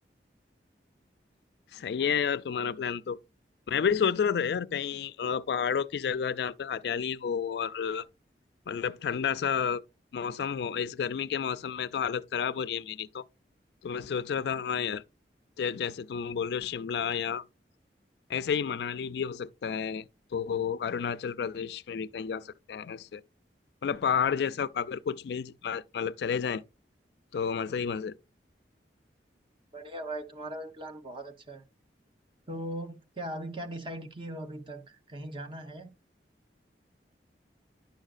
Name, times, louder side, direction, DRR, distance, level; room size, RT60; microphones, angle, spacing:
voice 1, 1.7-3.2 3.7-8.1 8.7-9.8 10.1-13.2 13.8-15.0 15.6-17.4 18.3-23.2 23.8-26.6 27.3-28.1, left 7 dB, 65° left, 0.3 m, -31 dB
voice 2, 29.7-31.6 32.5-35.9, right 1 dB, 30° right, 0.8 m, -39 dB
10.5 x 6.3 x 2.4 m
head